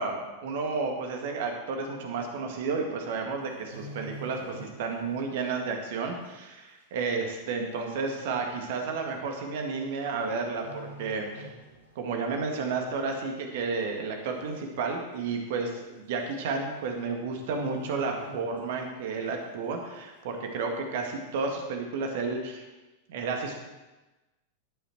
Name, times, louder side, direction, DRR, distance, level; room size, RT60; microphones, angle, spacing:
voice 1, 0.0-11.5 12.0-22.6 23.1-23.5, right 4 dB, 55° right, 3 dB, 1.8 m, -32 dB
sound 1, 3.4-5.1 5.4-5.7 6.2-6.3 7.2-7.3 7.6-7.7 8.5-8.7 9.8-10.2 10.5-12.1 12.4-12.6 13.1-13.6 14.0-14.1 14.3-14.4 14.8-14.9 15.9-16.0 16.3-16.6 16.8-17.0 17.3-19.0 19.3-19.4, right 1 dB, 75° right, 2.2 m, -45 dB
10.5 x 8.8 x 4.6 m, 1.1 s
figure-of-eight pair, 90°, 0 cm